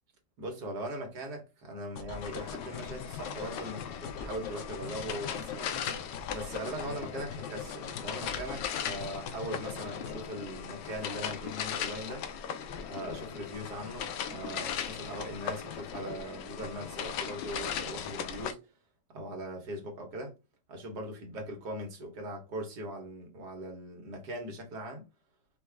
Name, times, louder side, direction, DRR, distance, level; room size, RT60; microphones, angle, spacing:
voice 1, 0.4-5.9 6.3-12.2 12.9-18.7 19.1-20.3 20.7-25.1, right 1 dB, 70° right, 1.7 m, -40 dB
sound 1, 2.0-10.3, left 8 dB, 65° left, 0.8 m, -42 dB
sound 2, 2.1-18.5, left 8 dB, 85° left, 1.3 m, -38 dB
5.0 x 2.4 x 3.3 m
omnidirectional pair, 1.9 m